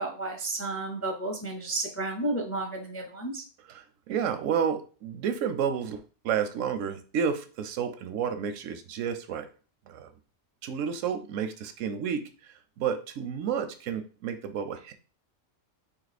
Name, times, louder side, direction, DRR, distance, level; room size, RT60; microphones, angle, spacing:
voice 1, 0.0-3.4, right 2 dB, 20° left, 1 dB, 0.4 m, -32 dB
voice 2, 3.7-9.5 9.9-10.1 10.6-12.3 12.8-14.9, right 7 dB, 85° right, 9 dB, 1.0 m, -31 dB
3.7 x 2.9 x 4.1 m, 0.37 s
omnidirectional pair, 1.3 m